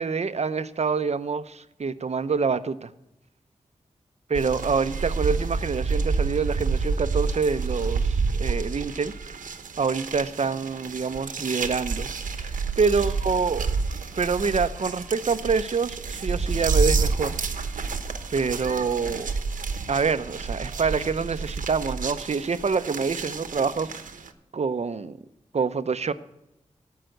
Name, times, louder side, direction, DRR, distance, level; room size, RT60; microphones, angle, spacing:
voice 1, 0.0-2.9 4.3-9.4 9.8-12.1 12.4-13.8 14.2-17.4 18.3-19.3 19.9-23.9 24.5-25.2 25.5-26.1, right 5 dB, 55° right, 13 dB, 0.7 m, -26 dB
sound 1, 4.3-24.3, right 4 dB, 85° right, 1.0 m, -29 dB
17.0 x 5.7 x 7.8 m, 0.87 s
cardioid pair, 55°, 13 cm